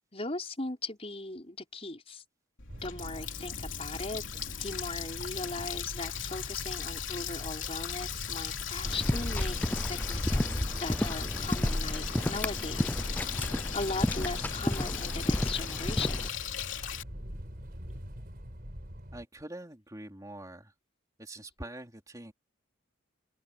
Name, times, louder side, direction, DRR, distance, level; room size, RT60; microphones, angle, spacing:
voice 1, 0.1-2.2 2.8-16.2, left 3 dB, 30° left, 5.5 m, -39 dB
Water tap faucet, 2.6-17.0, left 9 dB, 70° left, 3.2 m, -38 dB
sound 1, 2.7-19.2, equal, 50° right, 4.7 m, -44 dB
sound 2, 8.8-16.3, left 1 dB, 10° left, 0.4 m, -31 dB
voice 2, 19.1-20.7 21.2-22.3, right 1 dB, 15° right, 3.4 m, -44 dB
open air
head